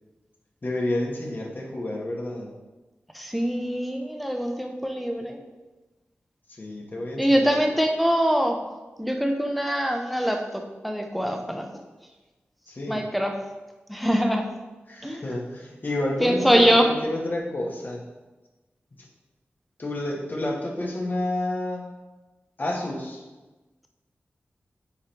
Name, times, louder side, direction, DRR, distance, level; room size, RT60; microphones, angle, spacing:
voice 1, 0.6-2.5 6.5-7.5 12.7-13.0 14.9-18.0 19.0-19.1 19.8-21.9 22.6-23.2, left 1 dB, 45° left, -2 dB, 1.5 m, -29 dB
voice 2, 3.1-5.4 7.2-8.6 9.0-11.7 12.9-13.3 13.9-14.4 15.0-15.2 16.2-16.9, equal, ahead, 3 dB, 0.9 m, -23 dB
9.6 x 3.3 x 4.5 m, 1.2 s
wide cardioid pair, 75°, 4 cm